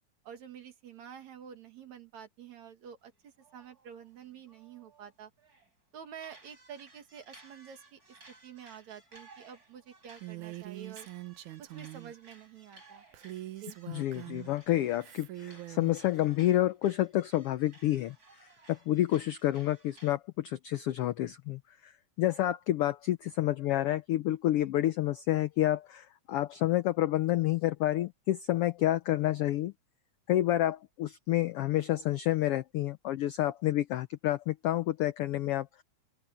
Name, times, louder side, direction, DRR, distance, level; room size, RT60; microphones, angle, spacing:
voice 1, 0.2-5.3 5.9-8.0 8.3-11.1 11.6-13.0 13.6-13.8, right 8 dB, 70° right, 3.2 m, -49 dB
sound 1, 3.1-5.7 6.2-20.2, right 2 dB, 30° right, 7.1 m, -59 dB
Female speech woman speaking, 10.2-12.1 13.1-14.5 15.0-16.0, right 16 dB, 90° right, 2.5 m, -43 dB
voice 2, 13.9-18.1 18.7-21.9 22.2-29.7 30.3-35.8, left 14 dB, 80° left, 1.3 m, -29 dB
open air
omnidirectional pair, 3.4 m